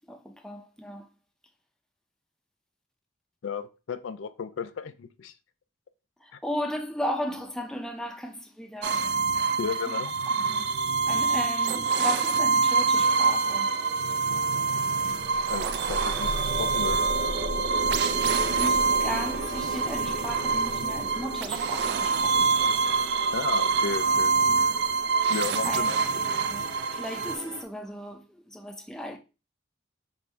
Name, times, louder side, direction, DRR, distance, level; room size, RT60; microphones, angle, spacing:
voice 1, 0.1-1.1 6.2-9.1 9.8-10.0 10.4-10.7 11.1-14.1 18.6-22.7 25.6-25.9 26.1-29.2, equal, 5° left, 0.5 m, -36 dB
voice 2, 3.4-5.3 6.3-6.4 9.6-10.1 15.5-17.0 23.3-24.6 25.3-26.0, left 5 dB, 90° left, 0.4 m, -34 dB
sound 1, 8.8-27.4, right 5 dB, 60° right, 0.3 m, -26 dB
sound 2, 12.9-27.6, right 2 dB, 75° right, 0.8 m, -42 dB
sound 3, 15.1-26.6, right 1 dB, 40° right, 0.7 m, -37 dB
3.5 x 2.5 x 4.3 m
head